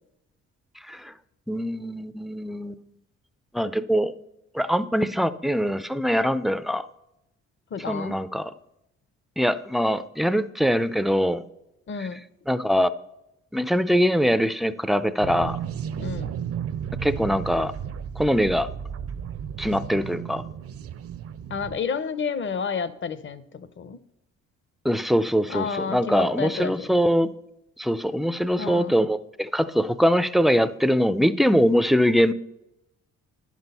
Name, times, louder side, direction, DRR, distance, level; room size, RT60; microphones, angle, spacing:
voice 1, 1.5-2.8 3.5-4.1 4.5-6.9 7.9-8.5 9.4-11.4 12.0-12.1 12.5-12.9 13.5-15.6 17.0-17.7 18.2-18.7 19.6-20.4 24.8-27.3 27.8-32.3, equal, ahead, 13 dB, 0.4 m, -23 dB
voice 2, 7.7-8.2 11.9-12.2 16.0-16.3 21.5-24.0 25.5-26.9 28.6-28.9, left 6 dB, 40° left, 15 dB, 0.7 m, -30 dB
sound 1, 15.2-21.8, right 8 dB, 50° right, 0.6 m, -33 dB
10.5 x 6.2 x 5.4 m, 0.85 s
cardioid pair, 90°, 30 cm